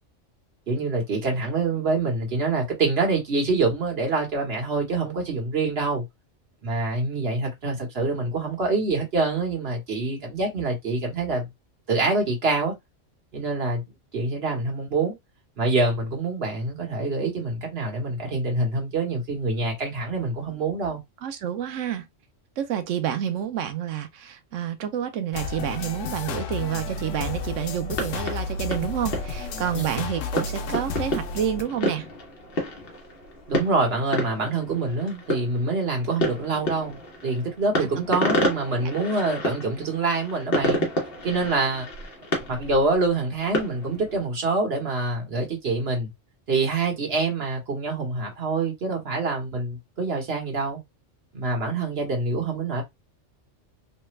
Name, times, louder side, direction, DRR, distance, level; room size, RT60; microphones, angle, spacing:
voice 1, 0.7-6.0 6.6-11.5 11.9-12.7 13.3-13.8 14.1-15.1 15.6-21.0 29.7-29.9 33.5-40.9 41.2-41.9 42.5-46.1 46.5-50.8 51.3-52.8, right 3 dB, 55° right, 1.4 m, -26 dB
voice 2, 21.2-22.0 22.6-32.1 37.8-37.9, right 9 dB, 80° right, 1.0 m, -29 dB
sound 1, 25.3-31.6, left 4 dB, 85° left, 1.0 m, -32 dB
sound 2, 27.8-44.2, left 1 dB, 50° left, 1.1 m, -30 dB
3.3 x 2.2 x 3.1 m
omnidirectional pair, 1.3 m